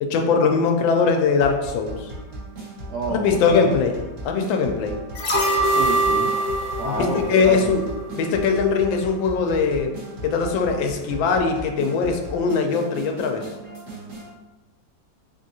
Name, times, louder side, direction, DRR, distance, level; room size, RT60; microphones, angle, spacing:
voice 1, 0.0-2.1 3.1-3.9 4.2-5.0 6.8-7.8 8.1-9.9 10.2-13.5, left 5 dB, 80° left, 4 dB, 1.3 m, -21 dB
sound 1, 1.4-14.3, right 2 dB, 50° right, 1.3 m, -37 dB
voice 2, 2.9-3.7 5.6-6.3 6.8-8.0, right 3 dB, 70° right, -2 dB, 1.0 m, -30 dB
sound 2, 5.1-8.3 8.6-8.7, right 1 dB, 60° left, 0.9 m, -23 dB
3.7 x 3.6 x 2.7 m, 1.1 s
omnidirectional pair, 2.1 m